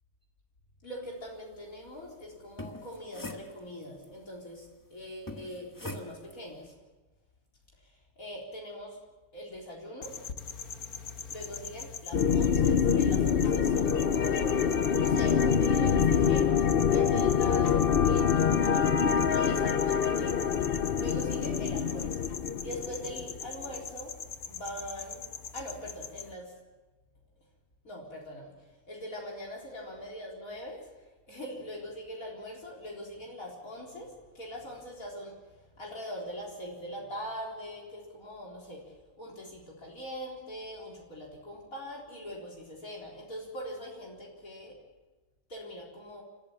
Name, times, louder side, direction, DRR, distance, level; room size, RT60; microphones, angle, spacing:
voice 1, 0.8-6.8 7.8-9.0 9.3-10.2 11.3-14.7 15.0-18.9 19.3-20.5 21.0-24.2 24.4-26.5 27.8-44.8 45.5-46.2, equal, 70° left, -1 dB, 4.5 m, -42 dB
sound 1, 2.4-4.0 5.3-6.4, left 1 dB, 15° left, 1.5 m, -42 dB
sound 2, 10.0-26.3, left 6 dB, 85° left, 1.6 m, -42 dB
sound 3, 12.1-23.5, left 7 dB, 50° left, 0.8 m, -25 dB
29.0 x 14.0 x 7.4 m, 1.2 s
omnidirectional pair, 1.5 m